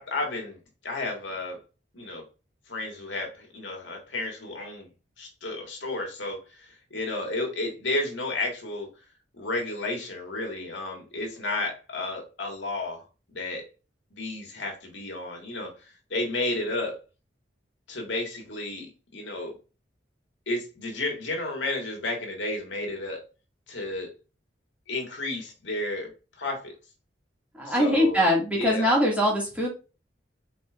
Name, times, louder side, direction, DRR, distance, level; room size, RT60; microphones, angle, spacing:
voice 1, 0.0-1.6 1.9-2.2 2.7-4.9 5.2-8.9 9.3-13.6 14.1-15.7 16.1-17.0 17.9-19.5 20.5-23.2 23.7-24.1 24.9-26.1 26.4-26.7 27.7-28.2 28.6-28.9, left 2 dB, 90° left, 1 dB, 1.8 m, -32 dB
voice 2, 27.5-29.7, equal, 10° right, -3 dB, 1.9 m, -22 dB
5.2 x 3.9 x 2.4 m, 0.32 s
head